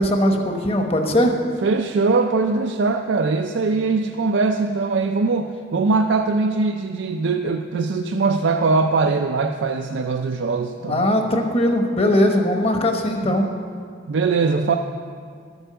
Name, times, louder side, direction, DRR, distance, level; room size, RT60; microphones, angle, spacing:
voice 1, 0.0-1.3 10.8-13.5, left 1 dB, 30° left, 3 dB, 1.0 m, -19 dB
voice 2, 1.6-11.1 13.2-13.3 14.1-14.8, right 4 dB, 75° right, 5 dB, 0.4 m, -21 dB
12.5 x 7.9 x 6.8 m, 2.2 s
head